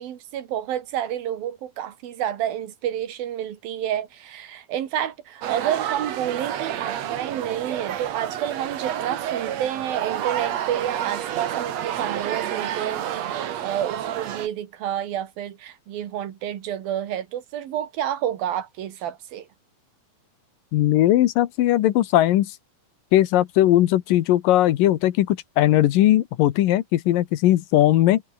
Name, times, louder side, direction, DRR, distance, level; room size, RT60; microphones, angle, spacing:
voice 1, 0.0-19.5, right 10 dB, 80° right, 3.7 m, -29 dB
crowd int high school cafeteria busy short, 5.4-14.5, right 10 dB, 55° right, 2.3 m, -29 dB
voice 2, 20.7-22.5 23.1-28.2, left 14 dB, 75° left, 2.7 m, -19 dB
omnidirectional pair, 4.1 m